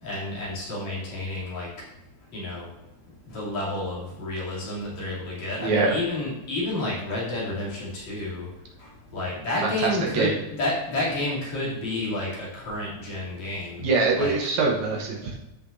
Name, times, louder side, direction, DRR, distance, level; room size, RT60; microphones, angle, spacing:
voice 1, 0.0-1.7 2.3-2.7 3.3-8.5 9.1-13.8 14.1-14.4, left 2 dB, 65° left, -7 dB, 4.1 m, -30 dB
voice 2, 5.6-6.0 9.6-10.3 13.8-15.4, right 3 dB, 70° right, -1 dB, 2.2 m, -24 dB
13.5 x 5.9 x 2.6 m, 0.97 s
omnidirectional pair, 3.6 m